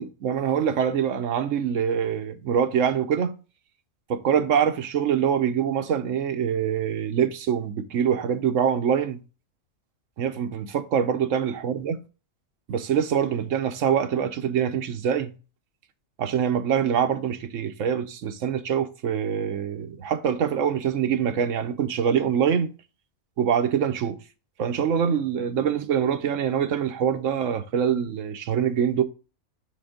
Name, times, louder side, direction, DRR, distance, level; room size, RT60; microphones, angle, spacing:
voice 1, 0.0-3.3 4.1-9.2 10.2-12.0 12.7-15.3 16.2-22.7 23.4-24.2 24.6-29.0, right 8 dB, 65° right, 1.1 m, -24 dB
7.9 x 3.5 x 5.0 m
omnidirectional pair, 1.4 m